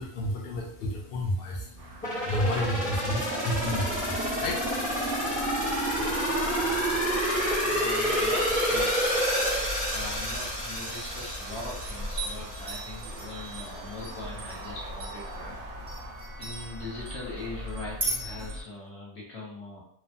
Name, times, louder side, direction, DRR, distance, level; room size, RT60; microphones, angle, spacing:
voice 1, 0.0-7.0, equal, 70° left, 0 dB, 0.5 m, -33 dB
sound 1, 1.8-18.6, right 3 dB, 80° right, 1.0 m, -44 dB
sound 2, 2.0-12.8 13.2-13.3, equal, 10° left, 0.6 m, -28 dB
sound 3, 3.5-18.6, equal, 60° right, 0.6 m, -39 dB
voice 2, 7.6-9.1 9.9-15.6 16.4-19.8, left 2 dB, 50° left, -6 dB, 1.3 m, -41 dB
2.9 x 2.0 x 2.5 m, 0.65 s
omnidirectional pair, 1.5 m